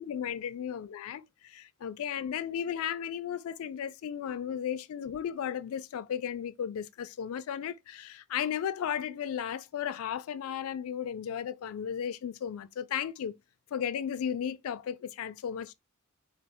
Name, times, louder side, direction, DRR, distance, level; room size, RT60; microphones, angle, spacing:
voice 1, 0.0-13.3 13.7-15.7, left 8 dB, 75° left, 0.3 m, -35 dB
3.0 x 2.0 x 2.8 m
head